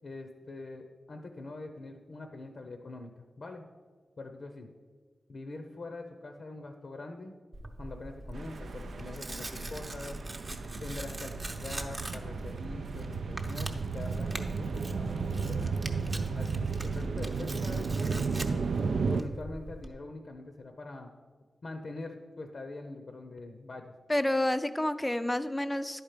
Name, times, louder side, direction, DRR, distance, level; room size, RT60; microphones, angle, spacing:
voice 1, 0.0-3.7 4.2-4.7 5.3-7.3 7.8-10.2 10.8-16.1 16.3-18.6 19.1-21.1 21.6-23.9, left 2 dB, 60° left, 5 dB, 0.7 m, -43 dB
Tearing, 7.5-19.9, right 1 dB, 30° right, 0.7 m, -42 dB
sound 1, 8.3-19.2, right 5 dB, 80° right, 0.3 m, -34 dB
voice 2, 24.1-26.0, left 1 dB, 15° left, 11 dB, 0.4 m, -29 dB
10.5 x 4.5 x 5.0 m, 1.5 s
wide cardioid pair, 80°, 0 cm